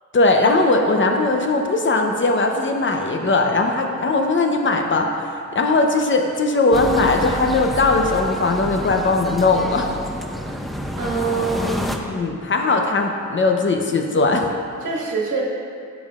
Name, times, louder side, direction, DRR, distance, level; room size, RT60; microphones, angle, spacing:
voice 1, 0.1-5.1 5.5-9.9 12.1-14.5, left 3 dB, 40° left, 3 dB, 0.8 m, -19 dB
sound 1, 6.7-12.0, equal, ahead, 0.5 m, -29 dB
voice 2, 11.0-12.0 14.8-15.4, right 4 dB, 60° right, -4 dB, 1.5 m, -24 dB
11.5 x 7.2 x 2.5 m, 2.4 s
wide cardioid pair, 115°, 31 cm